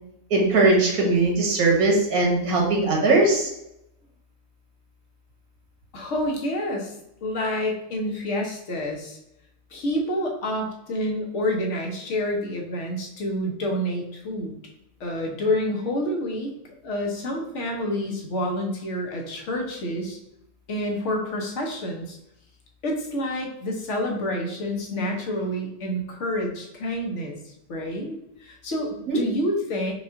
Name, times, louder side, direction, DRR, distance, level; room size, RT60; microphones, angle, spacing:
voice 1, 0.3-3.5 29.1-29.2, right 2 dB, 85° right, 0 dB, 1.6 m, -20 dB
voice 2, 5.9-6.9 7.2-9.2 9.7-14.6 15.0-16.5 16.8-20.2 20.7-22.2 22.8-28.2 28.4-29.9, left 1 dB, 60° left, 1 dB, 1.2 m, -28 dB
5.0 x 2.5 x 3.7 m, 0.81 s
omnidirectional pair, 1.5 m